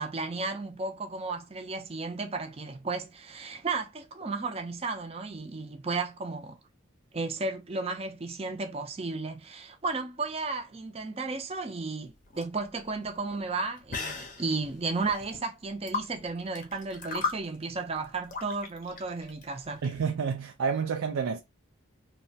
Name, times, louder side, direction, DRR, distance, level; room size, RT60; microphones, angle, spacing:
voice 1, 0.0-6.6 7.1-19.8, right 3 dB, 30° right, 0.5 m, -34 dB
sound 1, 12.0-20.0, left 4 dB, 40° left, 0.6 m, -38 dB
voice 2, 19.8-21.4, right 6 dB, 90° right, 0.4 m, -29 dB
2.9 x 2.1 x 2.6 m
head